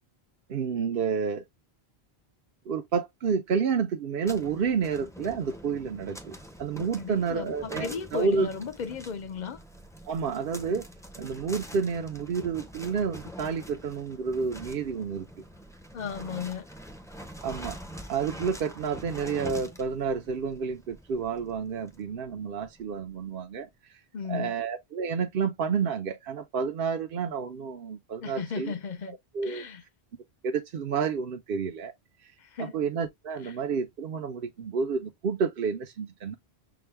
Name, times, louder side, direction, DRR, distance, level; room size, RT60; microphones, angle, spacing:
voice 1, 0.5-1.4 2.7-8.5 10.1-10.9 11.2-15.3 17.4-17.8 18.1-23.7 24.3-28.7 29.3-29.6 30.4-31.9 32.6-36.3, right 6 dB, 65° right, 0.9 m, -30 dB
sound 1, 4.2-23.0, equal, 5° left, 0.6 m, -45 dB
voice 2, 7.0-9.6 15.9-16.7 24.1-24.5 28.2-29.2 29.4-29.8 32.4-32.8 33.4-33.6, left 6 dB, 50° left, 0.8 m, -35 dB
6.0 x 2.2 x 3.3 m
omnidirectional pair, 1.1 m